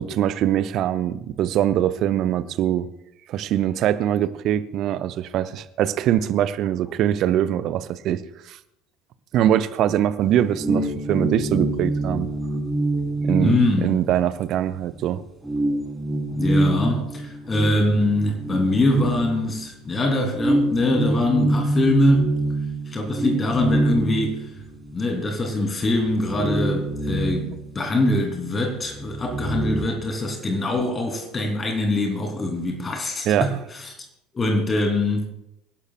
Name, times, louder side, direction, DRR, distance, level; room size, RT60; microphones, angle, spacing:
voice 1, 0.0-2.9 3.3-8.6 9.3-12.3 13.2-15.2 33.3-33.5, right 11 dB, 45° right, 0.7 m, -23 dB
sound 1, 10.2-14.5 14.9-15.0 15.4-19.8 20.3-25.0 25.4-25.5 25.9-28.3 28.6-29.8, right 1 dB, 10° right, 3.6 m, -26 dB
voice 2, 13.4-14.0 16.3-22.4 22.9-24.5 24.9-33.9 34.3-35.3, left 1 dB, 25° left, 3.1 m, -23 dB
26.0 x 11.5 x 2.4 m
figure-of-eight pair, 65°, 0 cm